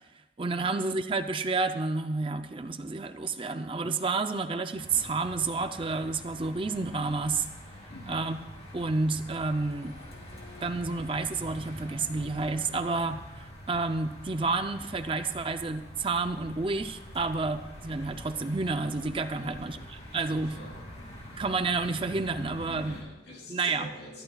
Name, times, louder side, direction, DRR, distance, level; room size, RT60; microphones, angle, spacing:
voice 1, 0.4-7.5 8.1-8.4 8.7-10.0 10.6-19.8 20.1-20.6 21.4-23.0 23.5-23.9, right 3 dB, 30° right, 8 dB, 0.5 m, -30 dB
sound 1, 4.7-23.0, equal, 35° left, 2.8 m, -45 dB
voice 2, 7.9-8.2 19.3-20.9 22.6-24.2, left 1 dB, 70° left, 0 dB, 3.3 m, -47 dB
21.0 x 14.0 x 2.3 m, 1.0 s
head